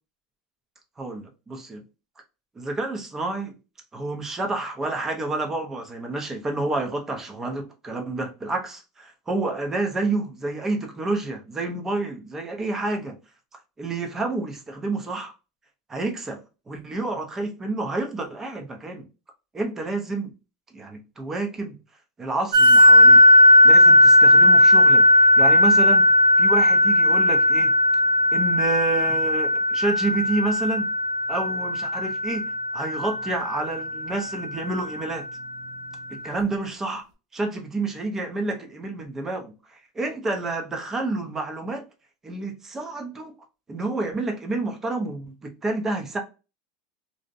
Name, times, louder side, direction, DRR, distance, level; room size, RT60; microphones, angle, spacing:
voice 1, 1.0-1.8 2.6-3.6 3.9-13.2 13.8-15.3 15.9-19.1 19.5-20.3 20.7-21.8 22.2-23.2 23.6-25.1 25.4-26.1 26.4-27.8 28.3-30.9 31.3-32.5 32.7-35.3 36.1-37.0 37.3-41.8 42.2-43.4 43.7-46.2, right 2 dB, 15° right, 0.6 m, -29 dB
sound 1, 22.5-34.7, left 1 dB, 80° right, 0.8 m, -17 dB
2.6 x 2.1 x 2.5 m
supercardioid pair, 135°, 3 cm